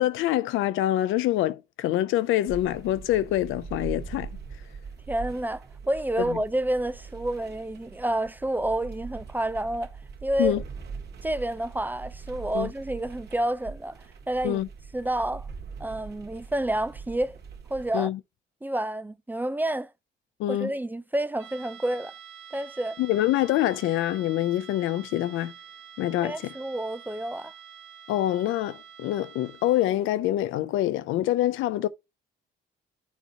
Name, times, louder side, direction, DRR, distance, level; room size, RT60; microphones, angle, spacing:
voice 1, 0.0-4.3 6.2-6.4 10.4-10.6 12.5-12.7 14.4-14.7 17.9-18.2 20.4-20.7 23.0-25.5 26.0-26.5 28.1-31.9, left 14 dB, 90° left, 0.4 m, -25 dB
sound 1, 2.5-17.9, right 5 dB, 55° right, 1.9 m, -42 dB
voice 2, 5.1-9.9 10.2-10.6 11.2-14.0 14.3-14.6 14.9-15.4 15.8-17.4 17.7-18.1 18.6-19.9 20.5-22.1 22.5-23.0 26.2-27.5, right 1 dB, 10° right, 0.4 m, -29 dB
sound 2, 21.4-30.1, right 8 dB, 85° right, 1.2 m, -47 dB
7.2 x 2.8 x 5.4 m
cardioid pair, 90°, 20 cm